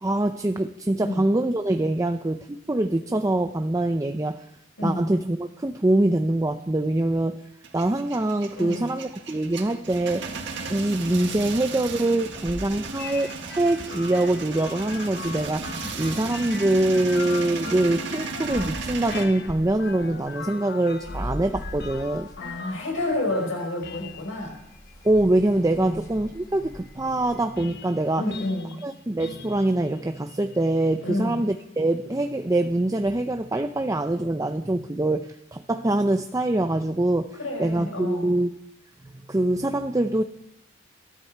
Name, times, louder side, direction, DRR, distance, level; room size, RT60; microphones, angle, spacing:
voice 1, 0.0-4.4 4.8-7.4 7.7-10.4 10.7-22.3 25.0-28.2 28.8-38.6 39.3-40.2, right 1 dB, 15° right, 7 dB, 0.6 m, -24 dB
Male speech man speaking / Vehicle / Engine starting, 7.6-19.2, right 4 dB, 65° right, 1.7 m, -35 dB
voice 2, 8.6-8.9 22.4-24.6 25.8-26.0 28.2-28.8 31.0-31.4 37.4-38.3, left 1 dB, 85° left, 1 dB, 5.2 m, -29 dB
sound 1, 10.2-16.1 17.0-20.5 20.8-27.4, equal, 20° left, 1.8 m, -42 dB
sound 2, 13.0-31.7, left 5 dB, 55° left, 1.2 m, -42 dB
21.5 x 13.0 x 4.6 m, 0.83 s
head